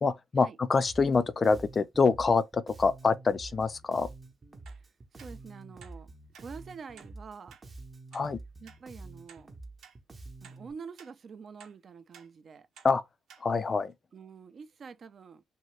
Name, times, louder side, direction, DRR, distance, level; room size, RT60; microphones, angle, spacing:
voice 1, 0.0-4.1 8.1-8.4 12.8-13.0 13.4-13.9, left 4 dB, 35° left, 0.4 m, -26 dB
Bass guitar, 0.8-10.7, right 2 dB, 30° right, 0.9 m, -48 dB
Antique wall clock, 4.7-4.8 5.2-5.3 5.8-6.0 6.3-6.5 7.0-7.1 7.5-7.6 8.1-8.3 8.7-8.8 9.3-9.4 9.8-10.0 10.4-10.6 11.0-11.1 11.6-11.8 12.1-12.3 12.8-12.9 13.3-13.4 13.9-14.0, right 7 dB, 75° right, 1.0 m, -54 dB
voice 2, 5.1-6.1 6.4-7.6 8.6-9.5 10.4-12.7 14.1-15.4, right 5 dB, 50° right, 0.5 m, -46 dB
2.7 x 2.7 x 3.2 m
cardioid pair, 90°, 0 cm